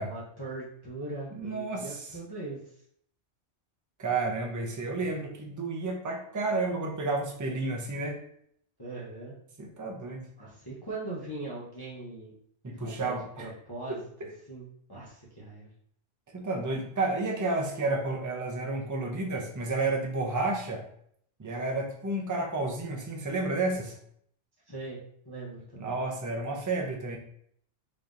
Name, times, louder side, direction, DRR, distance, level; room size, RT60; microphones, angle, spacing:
voice 1, 0.0-2.7 8.8-9.3 10.4-12.3 12.7-14.1 14.5-15.7 24.7-26.0, right 2 dB, 25° left, -7 dB, 0.7 m, -40 dB
voice 2, 1.4-2.0 4.0-8.2 9.6-10.3 12.6-13.5 13.9-14.3 16.3-20.8 21.4-24.0 25.8-27.2, right 3 dB, 25° right, 1 dB, 0.4 m, -31 dB
5.0 x 2.8 x 2.5 m, 0.66 s
omnidirectional pair, 1.2 m